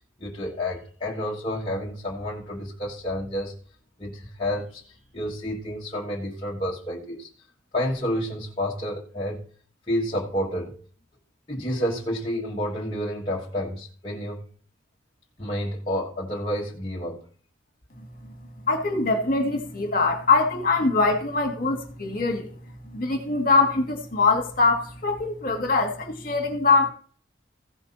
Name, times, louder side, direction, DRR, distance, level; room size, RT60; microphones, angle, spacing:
voice 1, 0.2-3.5 4.0-7.3 7.7-9.4 9.9-10.8 11.5-14.4 15.4-17.2, equal, 25° left, 1.5 m, -30 dB
voice 2, 18.7-22.5 22.9-26.9, left 3 dB, 45° left, 2.0 m, -23 dB
16.0 x 6.0 x 4.2 m
head